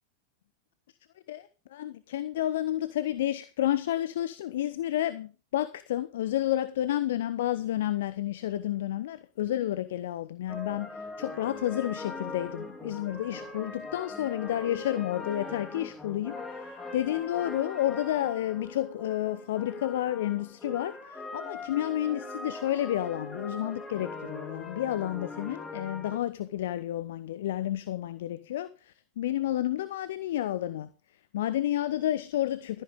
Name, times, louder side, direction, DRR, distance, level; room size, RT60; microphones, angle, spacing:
voice 1, 1.3-30.9 31.3-32.8, left 12 dB, 55° left, 0.9 m, -31 dB
sound 1, 10.5-26.2, left 2 dB, 10° left, 3.9 m, -41 dB
15.5 x 14.0 x 3.7 m
figure-of-eight pair, 90°, 0 cm